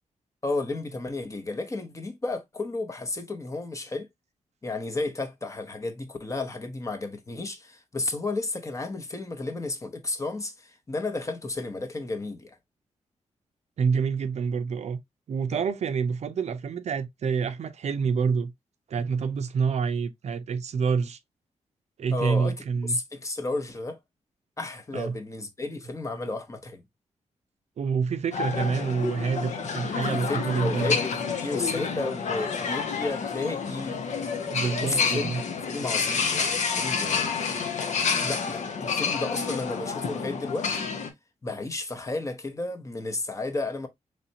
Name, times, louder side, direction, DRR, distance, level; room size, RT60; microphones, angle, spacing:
voice 1, 0.4-4.1 4.6-12.6 15.5-15.6 22.1-22.6 22.9-24.0 24.6-26.8 30.1-34.1 34.7-35.3 35.7-37.7 38.2-40.9 41.4-43.9, left 2 dB, 25° left, 0.8 m, -33 dB
voice 2, 13.8-15.0 15.3-18.5 18.9-21.2 22.0-23.0 24.9-25.2 27.8-31.0 34.4-35.4, right 5 dB, 65° right, 0.5 m, -27 dB
sound 1, 28.3-41.1, left 5 dB, 75° left, 0.8 m, -29 dB
4.1 x 3.2 x 2.7 m
wide cardioid pair, 115°, 12 cm